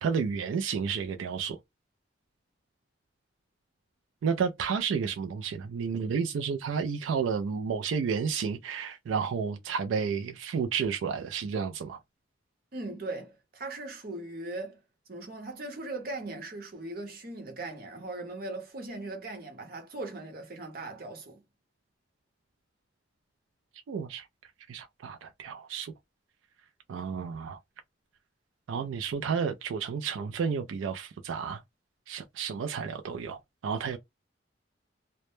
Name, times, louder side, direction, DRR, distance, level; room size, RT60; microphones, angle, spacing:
voice 1, 0.0-1.6 4.2-12.0 23.9-24.3 24.7-25.9 26.9-27.6 28.7-31.6 32.1-34.0, right 6 dB, 85° right, 0.3 m, -31 dB
voice 2, 12.7-14.8 15.1-21.4, right 2 dB, 50° right, 0.8 m, -39 dB
2.1 x 2.0 x 2.9 m
head